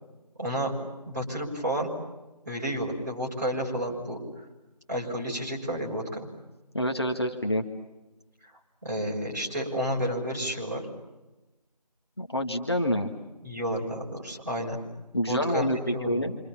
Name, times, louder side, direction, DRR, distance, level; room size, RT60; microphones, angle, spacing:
voice 1, 0.4-0.7 1.0-1.9 2.4-4.2 4.9-6.3 8.8-10.8 13.4-14.8 15.3-16.3, equal, 25° right, -6 dB, 6.2 m, -31 dB
voice 2, 6.7-7.7 12.2-13.1 15.1-16.4, equal, 40° left, 2 dB, 1.8 m, -27 dB
27.5 x 27.5 x 7.2 m, 1.1 s
figure-of-eight pair, 180°, 21 cm